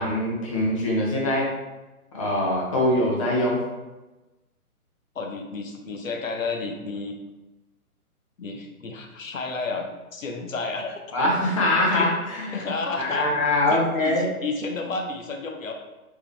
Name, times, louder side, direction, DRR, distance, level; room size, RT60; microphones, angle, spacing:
voice 1, 0.0-1.5 2.1-3.6 11.1-12.7 13.0-14.3, left 1 dB, 25° left, -3 dB, 0.6 m, -23 dB
voice 2, 5.1-7.2 8.4-11.0 11.9-12.1 12.5-13.3 13.7-15.7, left 3 dB, 60° left, 3 dB, 0.7 m, -31 dB
4.5 x 2.8 x 3.3 m, 1.1 s
figure-of-eight pair, 135°, 44 cm